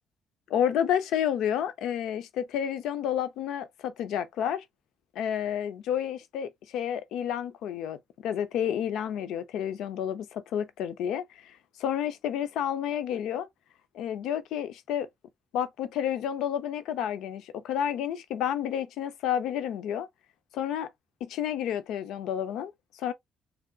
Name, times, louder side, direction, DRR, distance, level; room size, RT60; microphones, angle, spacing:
voice 1, 0.5-4.6 5.1-8.0 8.2-13.5 13.9-15.1 15.5-20.1 20.5-20.9 21.2-23.1, left 9 dB, 85° left, 0.6 m, -30 dB
3.9 x 3.4 x 2.3 m
cardioid pair, 90°, 0 cm